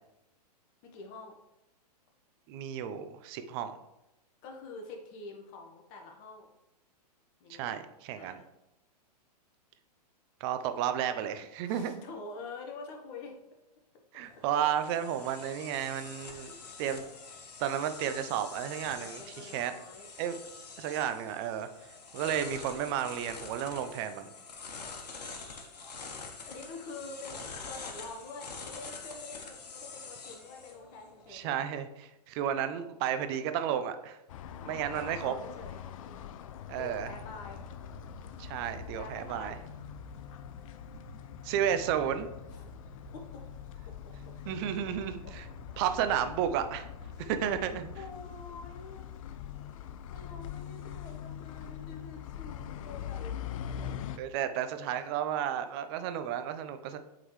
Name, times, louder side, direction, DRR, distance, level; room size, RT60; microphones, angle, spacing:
voice 1, 0.9-1.3 4.4-6.5 7.4-7.7 8.1-8.5 11.6-13.4 19.0-20.1 24.7-25.3 26.1-27.4 27.7-31.6 34.9-36.3 36.8-37.6 39.0-39.6 42.5-42.7 43.1-43.4 45.2-45.3 47.1-49.1 49.5-54.2, left 3 dB, 35° left, 2 dB, 1.2 m, -47 dB
voice 2, 2.5-3.8 7.5-8.4 10.4-12.0 14.1-17.0 17.6-19.7 20.2-20.4 20.8-21.7 22.1-24.3 31.3-31.9 32.3-34.2 34.6-35.3 36.7-37.1 38.4-39.6 41.4-42.3 44.5-45.4 45.8-46.9 47.2-47.9 54.2-57.0, right 9 dB, 40° right, 10 dB, 0.6 m, -32 dB
sound 1, 14.2-31.4, left 4 dB, 80° left, 1.3 m, -46 dB
sound 2, 34.3-54.2, left 9 dB, 55° left, 0.5 m, -43 dB
sound 3, 36.7-48.1, right 3 dB, 55° right, 2.0 m, -52 dB
7.9 x 3.8 x 3.2 m, 0.93 s
hypercardioid pair, 130°, 21 cm